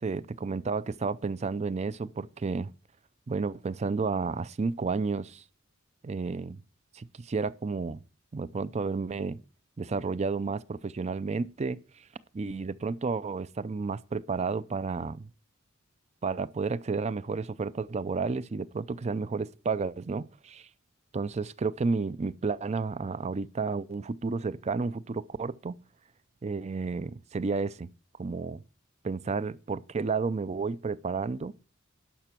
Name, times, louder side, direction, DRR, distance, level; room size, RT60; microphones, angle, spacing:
voice 1, 0.0-2.7 3.3-5.4 6.0-6.6 6.9-8.0 8.3-9.4 9.8-11.8 12.3-15.3 16.2-20.7 21.1-25.8 26.4-27.9 28.2-28.6 29.0-31.5, right 4 dB, 30° right, 0.4 m, -31 dB
11.0 x 6.0 x 5.8 m
head